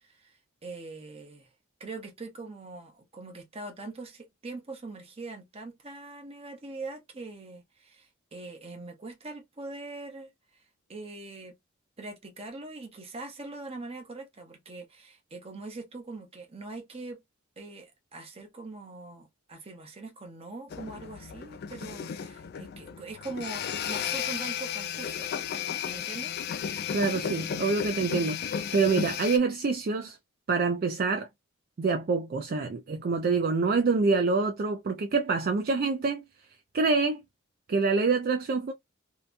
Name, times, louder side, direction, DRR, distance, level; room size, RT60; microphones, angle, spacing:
voice 1, 0.0-1.5 1.8-11.6 12.0-17.2 17.6-25.3 25.8-26.4, right 3 dB, 30° right, 0.8 m, -42 dB
sound 1, 20.7-29.4, left 8 dB, 50° left, 0.3 m, -34 dB
voice 2, 26.9-30.2 30.5-31.3 31.8-36.2 36.7-37.2 37.7-38.7, right 4 dB, 45° right, 0.4 m, -26 dB
2.8 x 2.2 x 2.5 m
head